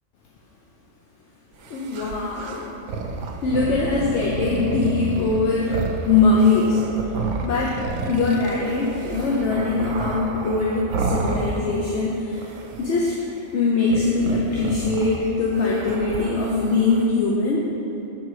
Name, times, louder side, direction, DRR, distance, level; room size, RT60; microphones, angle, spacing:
sound 1, 1.6-12.1 12.3-13.3 13.8-17.1, right 3 dB, 90° right, 1.0 m, -30 dB
voice 1, 1.7-2.8 3.4-6.8 7.4-12.4 12.8-13.2 13.5-17.7, left 3 dB, 70° left, -3 dB, 0.9 m, -22 dB
7.4 x 3.8 x 4.7 m, 2.9 s
omnidirectional pair, 1.3 m